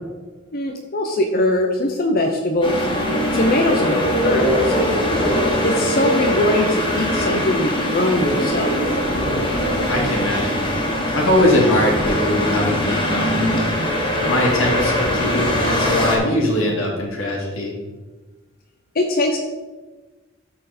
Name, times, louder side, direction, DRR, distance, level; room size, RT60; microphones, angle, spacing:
voice 1, 0.5-2.9 3.3-5.0 5.6-8.7 18.9-19.4, left 1 dB, 45° left, 3 dB, 0.8 m, -21 dB
sound 1, 2.6-16.2, equal, 25° left, 1.9 m, -21 dB
voice 2, 9.9-10.7 11.1-13.3 14.2-17.8, left 1 dB, 75° left, -2 dB, 2.5 m, -21 dB
13.0 x 4.5 x 4.3 m, 1.2 s
head